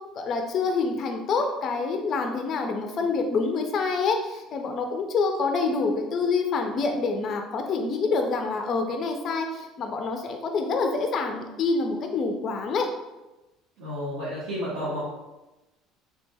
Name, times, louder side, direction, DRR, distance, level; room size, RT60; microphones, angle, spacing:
voice 1, 0.2-12.9, left 4 dB, 45° left, 4 dB, 0.4 m, -27 dB
voice 2, 13.8-15.0, equal, 90° right, -9 dB, 0.9 m, -31 dB
3.2 x 2.1 x 3.3 m, 1.0 s
supercardioid pair, 110°, 0 cm